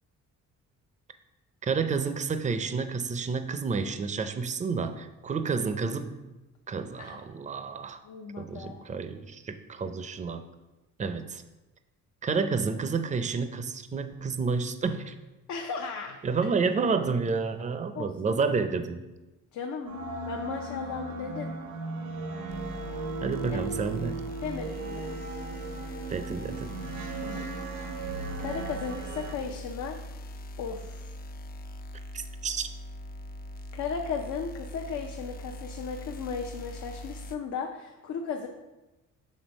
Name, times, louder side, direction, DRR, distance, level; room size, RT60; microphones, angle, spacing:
voice 1, 1.6-6.2 6.7-8.0 8.4-10.4 11.0-11.4 12.2-15.2 16.2-19.0 23.2-24.2 26.1-26.7 32.1-32.7, right 5 dB, 25° right, 10 dB, 0.5 m, -30 dB
voice 2, 8.0-8.8 15.5-16.5 17.9-18.4 19.5-19.9 20.3-21.5 23.5-23.6 24.4-25.2 27.1-27.5 27.7-30.0 30.6-31.1 33.7-38.5, left 5 dB, 70° left, 2 dB, 0.7 m, -36 dB
sound 1, 19.9-29.4, right 3 dB, 90° right, 1.0 m, -37 dB
sound 2, 22.5-37.4, left 1 dB, 30° left, 0.4 m, -41 dB
6.3 x 3.5 x 5.2 m, 1.1 s
cardioid pair, 90°, 30 cm